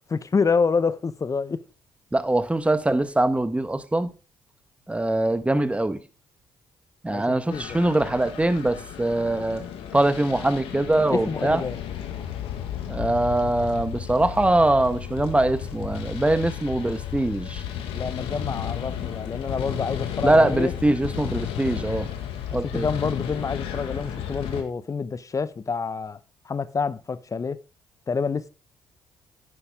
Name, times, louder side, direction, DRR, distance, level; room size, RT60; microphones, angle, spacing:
voice 1, 0.1-1.6 7.1-7.8 11.1-11.8 17.9-20.7 22.5-26.2 26.5-27.6 28.1-28.5, left 5 dB, 35° left, 0.9 m, -27 dB
voice 2, 2.1-4.1 4.9-6.0 7.0-9.6 9.9-11.6 12.9-17.6 20.2-22.1 22.5-22.9, right 1 dB, 10° right, 1.3 m, -22 dB
sound 1, 7.5-24.6, left 10 dB, 70° left, 1.8 m, -33 dB
11.0 x 9.8 x 3.6 m
hypercardioid pair, 50°, 10 cm